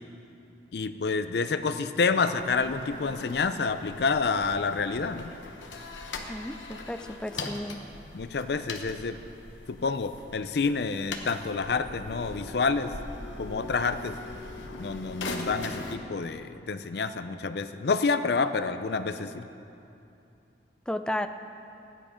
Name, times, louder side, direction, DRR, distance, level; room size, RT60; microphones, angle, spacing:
voice 1, 0.7-5.3 8.1-9.2 9.7-12.9 13.4-14.2 14.8-19.4, left 4 dB, 60° left, 11 dB, 0.5 m, -28 dB
sound 1, 2.4-16.0, left 3 dB, 90° left, 1.0 m, -41 dB
voice 2, 6.3-7.8 20.9-21.3, left 1 dB, 5° left, 8 dB, 0.3 m, -33 dB
13.5 x 9.9 x 5.0 m, 2.7 s
head